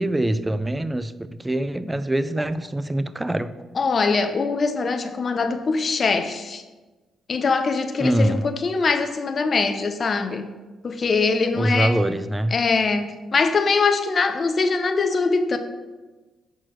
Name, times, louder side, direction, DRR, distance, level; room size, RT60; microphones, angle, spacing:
voice 1, 0.0-3.6 8.0-8.5 11.5-12.6, right 1 dB, 10° right, 0.3 m, -24 dB
voice 2, 3.8-6.6 7.3-10.5 10.8-12.0 12.5-15.6, left 4 dB, 40° left, 0.6 m, -22 dB
6.1 x 4.5 x 4.5 m
cardioid pair, 90°, 0 cm